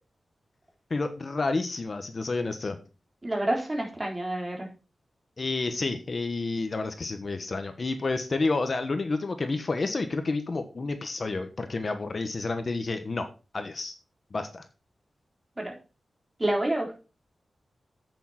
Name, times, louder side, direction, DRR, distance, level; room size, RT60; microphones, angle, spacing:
voice 1, 0.9-2.8 5.4-13.9 14.3-14.6, left 3 dB, 45° left, 8 dB, 1.1 m, -30 dB
voice 2, 3.2-4.7 15.6-15.7 16.4-16.9, right 1 dB, 20° right, 0 dB, 3.8 m, -28 dB
8.4 x 7.0 x 5.8 m, 0.33 s
wide cardioid pair, 115°, 0 cm